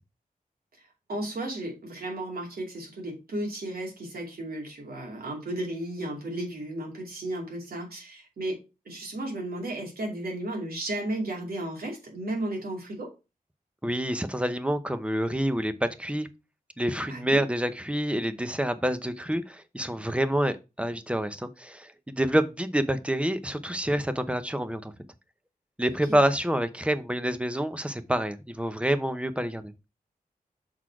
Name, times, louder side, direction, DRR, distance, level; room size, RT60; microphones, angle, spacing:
voice 1, 1.1-13.1 17.1-17.4 26.1-26.2, right 1 dB, 85° right, 0 dB, 2.7 m, -34 dB
voice 2, 13.8-16.3 16.8-24.9 25.8-29.7, right 1 dB, 5° right, 11 dB, 0.7 m, -27 dB
6.2 x 4.0 x 4.7 m, 0.27 s
wide cardioid pair, 105°, 15 cm